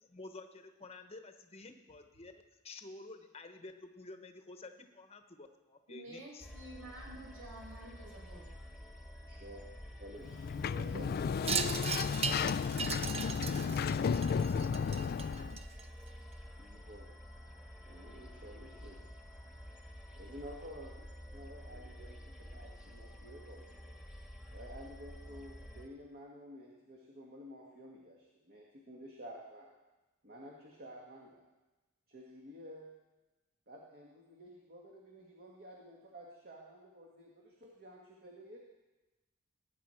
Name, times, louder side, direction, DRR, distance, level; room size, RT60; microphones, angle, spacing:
voice 1, 0.0-2.3 2.6-6.5, left 3 dB, 30° left, 7 dB, 1.0 m, -50 dB
voice 2, 5.9-8.5, right 1 dB, 75° right, -4 dB, 5.7 m, -50 dB
sound 1, 6.4-25.9, equal, 5° right, 1.6 m, -50 dB
voice 3, 9.3-9.6 10.0-11.8 12.5-13.9 16.6-17.1 17.8-19.1 20.1-21.1 21.3-23.9 24.5-29.7 30.2-31.4 32.1-32.9 33.7-38.6, equal, 45° right, -2 dB, 1.8 m, -52 dB
Sliding door, 10.2-15.6, left 6 dB, 45° left, 0.3 m, -33 dB
Wind chime, 11.4-16.1, right 6 dB, 30° right, 0.5 m, -38 dB
19.0 x 9.5 x 4.4 m, 1.1 s
head